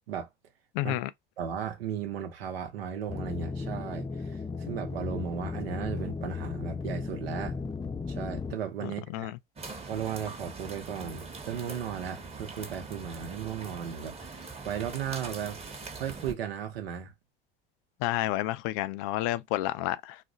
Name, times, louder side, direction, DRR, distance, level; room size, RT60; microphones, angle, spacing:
voice 1, 0.7-1.1 8.8-9.4 18.0-20.2, left 15 dB, 65° left, 0.4 m, -30 dB
voice 2, 1.4-7.6 8.1-9.3 9.9-15.6 15.9-17.1, right 8 dB, 85° right, 0.8 m, -36 dB
sound 1, 3.1-8.5, left 4 dB, 15° left, 0.5 m, -35 dB
sound 2, 9.6-16.3, right 4 dB, 20° right, 0.9 m, -42 dB
2.4 x 2.1 x 3.8 m
hypercardioid pair, 80°, 29 cm